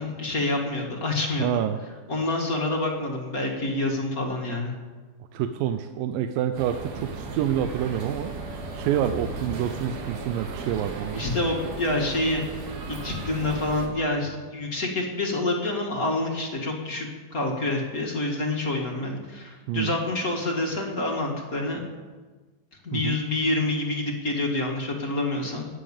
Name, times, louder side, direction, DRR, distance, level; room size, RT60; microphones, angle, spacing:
voice 1, 0.0-1.6 2.1-4.8 11.1-21.8 22.8-25.7, left 2 dB, 35° left, 1 dB, 1.7 m, -27 dB
voice 2, 1.4-1.8 5.3-8.3 8.7-11.2 19.7-19.9 22.9-23.2, right 10 dB, 90° right, 8 dB, 2.4 m, -27 dB
sound 1, 6.6-13.9, right 3 dB, 65° right, 3.4 m, -36 dB
15.0 x 9.9 x 7.2 m, 1.4 s
omnidirectional pair, 3.9 m